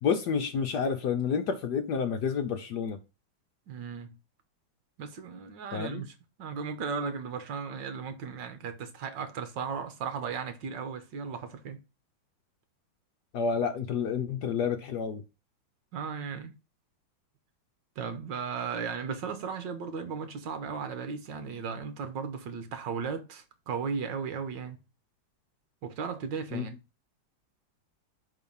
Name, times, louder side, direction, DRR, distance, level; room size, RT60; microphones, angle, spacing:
voice 1, 0.0-3.0 5.7-6.0 13.3-15.2 26.5-26.6, left 6 dB, 65° left, 1.1 m, -29 dB
voice 2, 3.7-4.2 5.0-11.8 15.9-16.5 18.0-24.8 25.8-26.7, right 6 dB, 65° right, 1.6 m, -36 dB
9.7 x 3.3 x 5.4 m
omnidirectional pair, 2.3 m